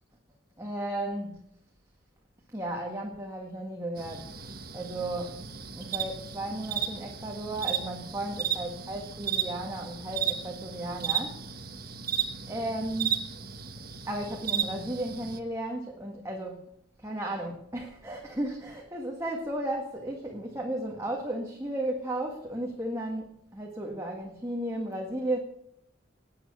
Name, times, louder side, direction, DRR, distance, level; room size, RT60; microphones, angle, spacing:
voice 1, 0.6-1.4 2.5-5.3 5.7-11.4 12.5-13.2 14.1-16.7 17.0-25.4, right 1 dB, 15° right, 0 dB, 1.7 m, -34 dB
sound 1, 4.0-15.4, right 8 dB, 50° right, 1.3 m, -34 dB
19.0 x 8.9 x 6.8 m, 0.73 s
head